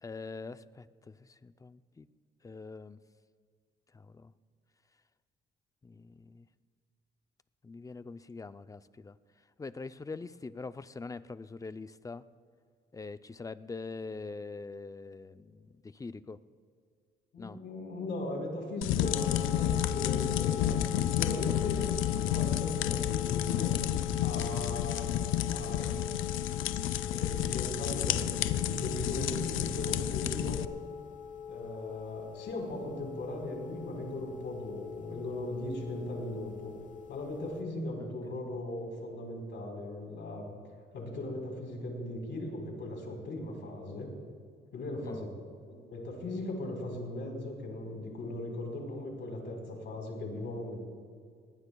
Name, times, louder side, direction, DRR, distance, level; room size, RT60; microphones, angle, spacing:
voice 1, 0.0-2.1 2.4-3.0 3.9-4.3 5.8-6.5 7.6-9.2 9.6-12.2 12.9-16.4 17.4-17.6 38.0-38.1 45.0-45.2, left 4 dB, 15° left, 14 dB, 0.4 m, -43 dB
voice 2, 17.3-21.9 22.2-23.8 24.2-26.0 27.1-30.7 31.5-36.7 37.1-40.5 40.9-44.1 44.7-45.3 45.7-50.8, left 1 dB, 65° left, 1 dB, 4.1 m, -38 dB
sound 1, 18.8-30.7, left 11 dB, 85° left, 0.5 m, -31 dB
sound 2, 19.0-37.6, left 8 dB, 40° left, 1.0 m, -41 dB
23.0 x 18.5 x 2.3 m, 2.1 s
cardioid pair, 90°, 20 cm